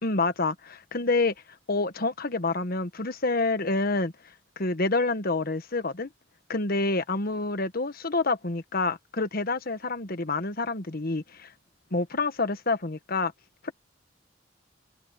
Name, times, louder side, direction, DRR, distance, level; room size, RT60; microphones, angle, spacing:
voice 1, 0.0-1.3 1.7-4.1 4.6-6.1 6.5-11.5 11.9-13.3 13.6-13.7, left 3 dB, 50° left, 1.4 m, -27 dB
head